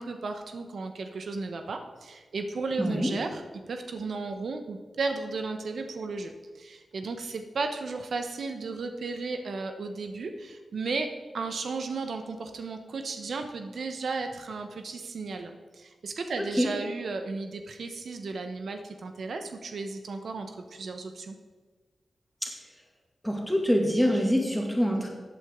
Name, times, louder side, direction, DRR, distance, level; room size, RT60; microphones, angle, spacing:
voice 1, 0.0-3.4 3.7-21.4, right 3 dB, 70° right, 6 dB, 0.9 m, -34 dB
voice 2, 2.8-3.1 16.4-16.7 22.4-22.5 23.2-25.1, equal, 5° left, 0 dB, 2.1 m, -25 dB
14.5 x 8.6 x 3.7 m, 1.4 s
wide cardioid pair, 120°, 0 cm